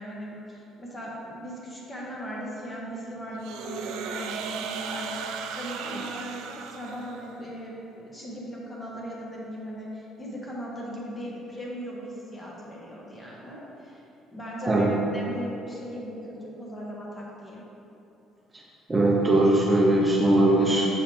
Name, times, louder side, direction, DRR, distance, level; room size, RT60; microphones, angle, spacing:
voice 1, 0.0-14.0 14.3-17.6, equal, 25° left, -4 dB, 1.4 m, -38 dB
sound 1, 3.4-7.5, right 7 dB, 85° right, 0.4 m, -36 dB
voice 2, 18.9-20.9, right 1 dB, 20° right, -3 dB, 0.6 m, -20 dB
7.0 x 4.7 x 3.5 m, 2.9 s
cardioid pair, 115°, 0 cm